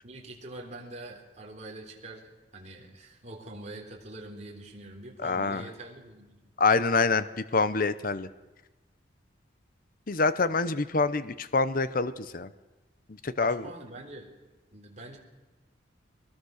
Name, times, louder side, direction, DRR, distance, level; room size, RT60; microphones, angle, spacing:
voice 1, 0.0-6.4 13.4-14.3 14.7-15.2, right 2 dB, 35° right, 1 dB, 3.7 m, -44 dB
voice 2, 5.2-5.7 6.6-7.3 7.5-8.3 10.1-12.5 13.2-13.7, left 4 dB, 45° left, 14 dB, 0.8 m, -26 dB
22.5 x 20.5 x 6.5 m, 1.1 s
head